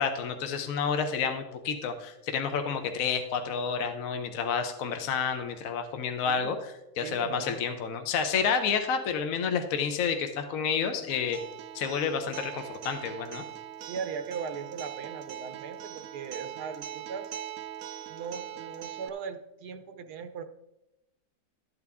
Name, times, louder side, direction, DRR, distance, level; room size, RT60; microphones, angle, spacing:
voice 1, 0.0-11.4 11.7-13.4, left 6 dB, 65° left, 6 dB, 1.2 m, -30 dB
voice 2, 7.0-7.6 13.8-17.3 18.1-20.4, right 6 dB, 85° right, 9 dB, 1.3 m, -39 dB
Acoustic guitar, 11.1-19.1, right 10 dB, 70° right, 0.8 m, -41 dB
12.5 x 8.5 x 3.5 m, 0.90 s
omnidirectional pair, 1.7 m